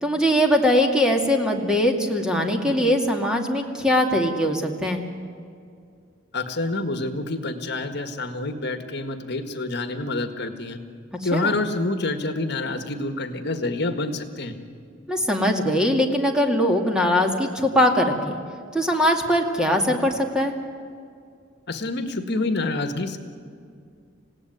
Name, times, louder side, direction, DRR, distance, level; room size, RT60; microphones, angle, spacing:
voice 1, 0.0-5.0 11.3-11.5 15.1-18.4 18.7-20.5, equal, 5° right, 2 dB, 2.3 m, -21 dB
voice 2, 6.3-10.8 11.2-14.5 21.7-23.2, left 2 dB, 60° left, 7 dB, 1.7 m, -27 dB
28.0 x 17.0 x 9.5 m, 2.3 s
head